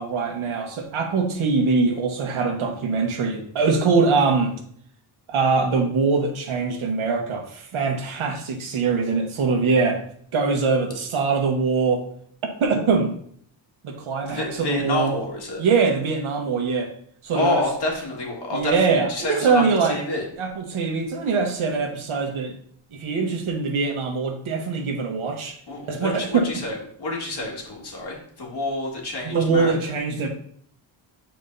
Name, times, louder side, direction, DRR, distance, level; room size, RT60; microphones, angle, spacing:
voice 1, 0.0-4.5 5.3-10.0 10.3-12.0 12.6-13.1 13.8-15.2 15.6-16.9 17.2-17.6 18.5-20.0 20.4-22.5 22.9-25.6 25.9-26.5 29.2-30.3, right 4 dB, 85° right, 3 dB, 1.3 m, -23 dB
voice 2, 14.2-15.6 17.3-19.6 19.9-20.2 25.7-29.7, left 2 dB, 55° left, -2 dB, 2.2 m, -28 dB
8.7 x 4.6 x 2.7 m, 0.63 s
wide cardioid pair, 120°, 48 cm